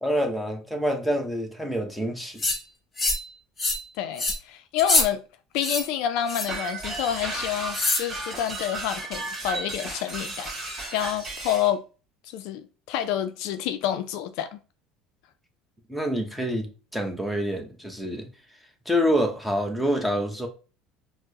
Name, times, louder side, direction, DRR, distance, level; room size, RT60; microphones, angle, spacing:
voice 1, 0.0-2.5 15.9-18.3 18.9-20.5, equal, ahead, 0.8 m, -27 dB
sound 1, 2.4-2.6 3.0-3.3 3.6-3.8 4.2-4.4 4.8-5.1 5.6-5.8 6.3-6.6 7.7-8.1, left 2 dB, 25° left, 1.2 m, -24 dB
voice 2, 4.0-5.2 5.5-10.5 10.9-11.8 12.3-14.6, left 10 dB, 70° left, 0.3 m, -28 dB
sound 2, 6.5-11.7, right 2 dB, 25° right, 1.7 m, -34 dB
4.4 x 2.0 x 2.7 m
supercardioid pair, 100°, 0 cm